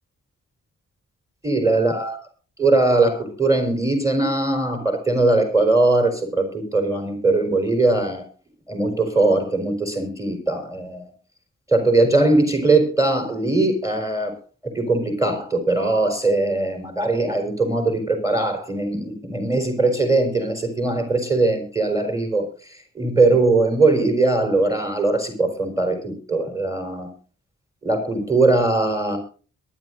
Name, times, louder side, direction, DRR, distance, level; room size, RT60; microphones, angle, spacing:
voice 1, 1.4-2.2 2.6-8.3 8.7-11.1 11.7-14.4 14.6-27.1 27.8-29.2, right 2 dB, 10° right, 5 dB, 4.2 m, -20 dB
22.5 x 11.0 x 2.6 m, 0.37 s
wide cardioid pair, 120°, 32 cm